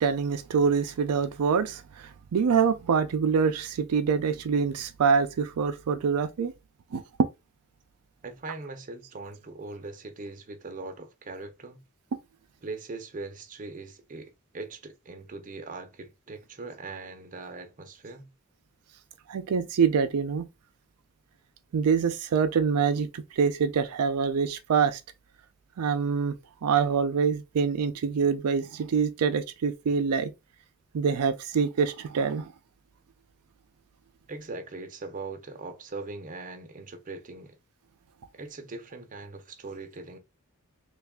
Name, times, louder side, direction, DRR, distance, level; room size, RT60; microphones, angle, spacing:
voice 1, 0.0-6.5 6.9-7.0 19.3-20.5 21.7-25.0 25.8-26.4 26.6-30.3 30.9-32.5, right 6 dB, 85° right, 0.4 m, -25 dB
voice 2, 8.2-11.8 12.6-18.3 34.3-37.5 38.3-40.2, right 3 dB, 35° right, 0.6 m, -40 dB
3.3 x 2.3 x 3.5 m
head